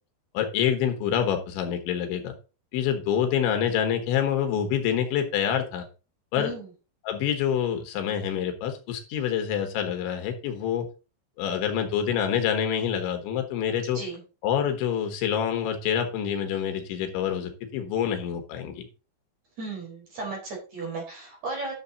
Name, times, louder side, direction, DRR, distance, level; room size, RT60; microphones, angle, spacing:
voice 1, 0.4-2.3 2.7-5.9 6.3-6.5 7.1-10.9 11.4-14.0 14.4-18.9, left 9 dB, 75° left, 6 dB, 3.6 m, -26 dB
voice 2, 6.4-6.7 13.9-14.2 19.6-21.7, right 3 dB, 40° right, -2 dB, 5.3 m, -35 dB
11.5 x 6.7 x 4.0 m, 0.33 s
omnidirectional pair, 5.5 m